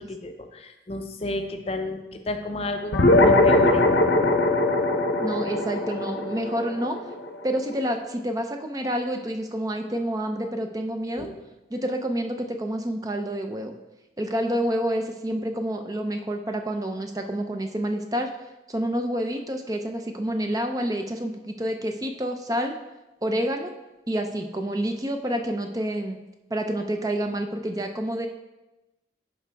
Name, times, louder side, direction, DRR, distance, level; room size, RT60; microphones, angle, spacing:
voice 1, 0.0-3.9 11.2-11.3, left 2 dB, 35° left, 6 dB, 0.5 m, -31 dB
sound 1, 2.9-7.7, left 2 dB, 70° left, 0.8 m, -21 dB
voice 2, 5.2-7.0 7.4-11.3 11.7-13.8 14.2-18.3 18.7-22.7 23.2-23.7 24.1-26.2 26.5-28.3, right 1 dB, 20° right, 5 dB, 0.5 m, -28 dB
11.0 x 5.0 x 3.4 m, 1.0 s
head